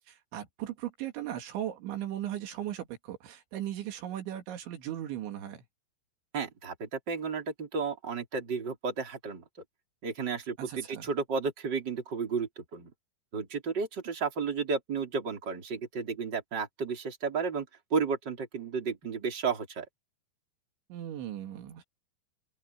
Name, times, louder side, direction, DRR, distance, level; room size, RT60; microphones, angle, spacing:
voice 1, 0.1-5.6 10.6-11.1 20.9-21.8, right 12 dB, 80° right, 4.4 m, -37 dB
voice 2, 6.3-9.4 10.0-12.9 13.3-17.7 17.9-19.9, right 5 dB, 25° right, 4.1 m, -33 dB
open air
omnidirectional pair, 5.3 m